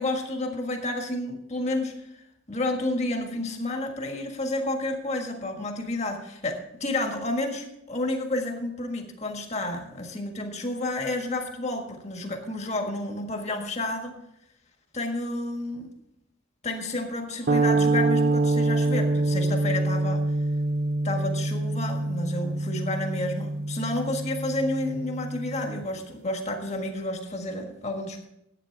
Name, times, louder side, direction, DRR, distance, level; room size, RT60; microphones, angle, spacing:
voice 1, 0.0-14.1 14.9-15.9 16.6-20.2 21.0-28.3, left 2 dB, 35° left, 3 dB, 1.6 m, -30 dB
sound 1, 17.5-25.8, right 2 dB, 50° right, 0.6 m, -26 dB
11.5 x 8.9 x 4.7 m, 0.82 s
head